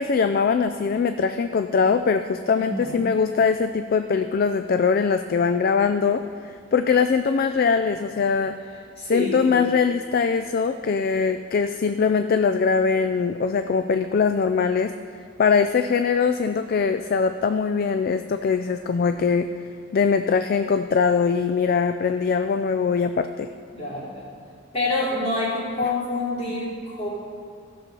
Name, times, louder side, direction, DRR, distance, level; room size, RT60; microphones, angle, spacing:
voice 1, 0.0-8.6 9.1-14.9 15.4-19.5 19.9-23.5, left 5 dB, 45° left, 9 dB, 0.3 m, -22 dB
voice 2, 2.5-3.0 9.0-9.5 23.7-24.2 24.7-27.1, left 2 dB, 30° left, -6 dB, 2.9 m, -27 dB
15.0 x 6.9 x 5.3 m, 2.2 s
head